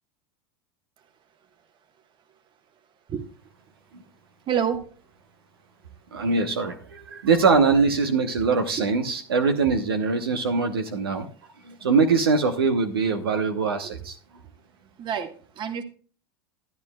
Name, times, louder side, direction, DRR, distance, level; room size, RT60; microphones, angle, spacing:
voice 1, 4.5-4.8 15.0-15.8, right 8 dB, 40° right, 8 dB, 1.3 m, -27 dB
voice 2, 6.1-11.3 11.6-14.2, right 4 dB, 90° right, 7 dB, 0.9 m, -22 dB
12.0 x 10.5 x 2.3 m, 0.39 s
hypercardioid pair, 95°, 12 cm